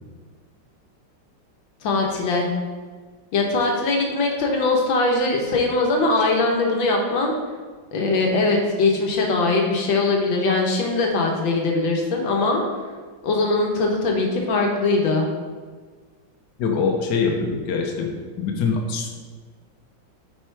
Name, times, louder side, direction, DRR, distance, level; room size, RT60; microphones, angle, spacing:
voice 1, 1.8-2.5 3.3-7.3 7.9-12.6 13.2-15.3, left 3 dB, 80° left, 1 dB, 1.8 m, -21 dB
voice 2, 16.6-19.1, left 5 dB, 65° left, 2 dB, 1.4 m, -24 dB
7.8 x 4.6 x 4.6 m, 1.5 s
omnidirectional pair, 2.1 m